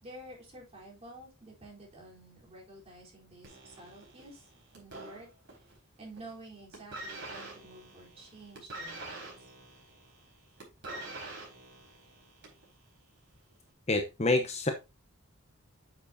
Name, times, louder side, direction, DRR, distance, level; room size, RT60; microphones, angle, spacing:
voice 1, 0.0-4.4 4.8-5.3 6.0-9.3, right 1 dB, 30° right, -3 dB, 3.9 m, -50 dB
sound 1, 3.4-5.8 6.1-6.4 6.7-12.7 13.5-13.6, right 2 dB, 55° right, 4.3 m, -45 dB
voice 2, 13.9-14.7, left 2 dB, 30° left, 5 dB, 0.9 m, -27 dB
8.9 x 7.4 x 2.7 m, 0.25 s
head